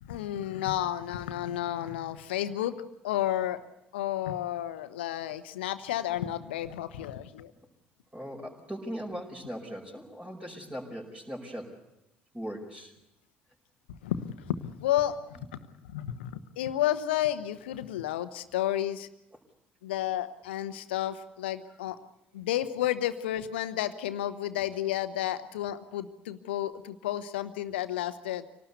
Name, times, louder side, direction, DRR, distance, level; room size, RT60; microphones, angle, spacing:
voice 1, 0.0-2.8 3.0-3.6 3.9-7.5 13.9-15.2 15.5-15.6 15.9-19.1 19.8-22.0 22.3-28.5, left 12 dB, 75° left, 12 dB, 1.1 m, -31 dB
voice 2, 8.1-11.8 12.3-12.9, equal, 20° right, -3 dB, 5.3 m, -39 dB
25.5 x 18.5 x 8.2 m, 0.86 s
figure-of-eight pair, 50°, 6 cm